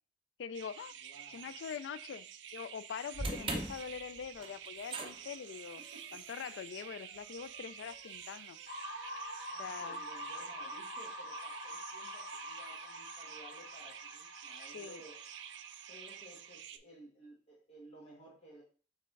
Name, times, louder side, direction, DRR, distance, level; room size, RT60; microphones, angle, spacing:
voice 1, 0.4-0.9 1.3-2.3 2.5-5.8 6.1-8.6 9.6-10.0 14.5-15.0, left 7 dB, 80° left, 0.3 m, -44 dB
sound 1, 0.5-16.8, right 9 dB, 80° right, 0.4 m, -50 dB
voice 2, 1.0-1.4 5.8-6.2 9.5-15.2 15.9-18.6, right 1 dB, 35° left, 1.4 m, -56 dB
sound 2, 3.1-9.4, right 2 dB, 30° right, 0.7 m, -44 dB
sound 3, 8.7-16.5, equal, 60° left, 1.1 m, -45 dB
5.6 x 3.5 x 2.5 m
head